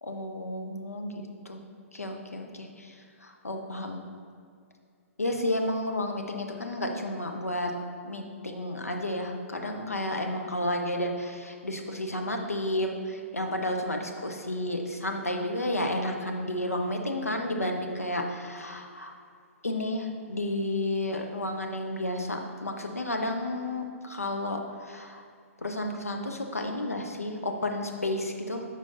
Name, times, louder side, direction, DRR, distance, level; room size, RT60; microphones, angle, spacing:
voice 1, 0.0-1.6 1.9-2.9 3.2-4.0 5.2-7.7 8.0-19.1 19.6-25.2 25.6-28.7, left 1 dB, 85° left, 3 dB, 0.8 m, -31 dB
12.5 x 4.9 x 2.7 m, 2.2 s
figure-of-eight pair, 120°, 8 cm